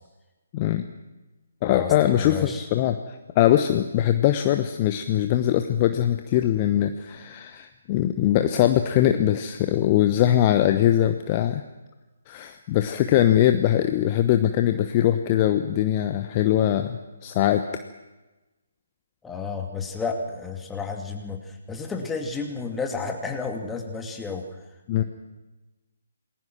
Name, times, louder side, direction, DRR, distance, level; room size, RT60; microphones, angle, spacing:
voice 1, 0.5-0.9 1.6-11.6 12.3-17.6 24.9-25.0, left 12 dB, 25° left, 7 dB, 1.1 m, -22 dB
voice 2, 1.6-2.6 19.2-24.4, left 4 dB, 5° left, 3 dB, 2.4 m, -31 dB
28.5 x 20.0 x 6.1 m, 1.1 s
figure-of-eight pair, 140°, 0 cm